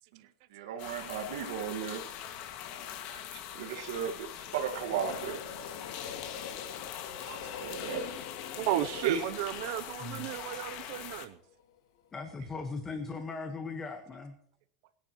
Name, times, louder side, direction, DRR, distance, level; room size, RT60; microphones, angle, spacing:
voice 1, 0.5-2.0 3.5-5.4 7.6-8.0 9.0-9.2, right 8 dB, 80° right, 3 dB, 1.7 m, -34 dB
sound 1, 0.8-11.3, left 10 dB, 45° left, 1.9 m, -43 dB
Train, 2.6-11.6 12.0-12.1, left 7 dB, 80° left, 2.5 m, -46 dB
voice 2, 3.1-3.9 7.2-7.4 7.8-8.0 8.6-11.4, right 14 dB, 55° right, 14 dB, 0.6 m, -36 dB
voice 3, 12.1-14.4, left 4 dB, 15° left, 6 dB, 1.3 m, -38 dB
29.0 x 10.5 x 3.0 m, 0.66 s
supercardioid pair, 165°, 3 cm